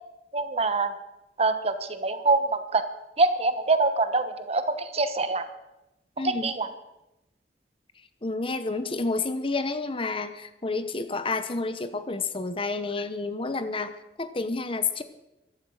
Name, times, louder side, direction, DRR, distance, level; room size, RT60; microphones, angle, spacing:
voice 1, 0.3-0.9 1.4-2.8 3.2-5.4 6.4-6.7, right 3 dB, 35° right, 10 dB, 1.0 m, -24 dB
voice 2, 6.2-6.5 8.2-13.9 14.2-15.0, left 3 dB, 30° left, 11 dB, 0.9 m, -30 dB
15.0 x 12.0 x 6.4 m, 0.95 s
head